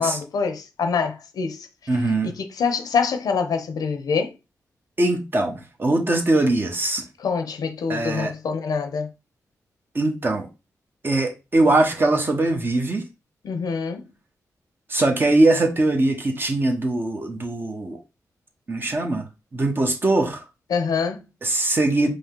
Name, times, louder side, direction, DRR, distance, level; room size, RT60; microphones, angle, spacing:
voice 1, 0.0-1.7 2.2-4.3 7.2-9.1 13.4-14.1 20.7-21.3, left 5 dB, 80° left, 0.7 m, -25 dB
voice 2, 1.9-2.3 5.0-7.0 7.9-8.3 9.9-10.5 11.0-13.0 14.9-18.0 18.7-20.4 21.4-22.1, right 2 dB, 35° right, 1.0 m, -21 dB
5.1 x 2.1 x 3.8 m
cardioid pair, 90°, 6 cm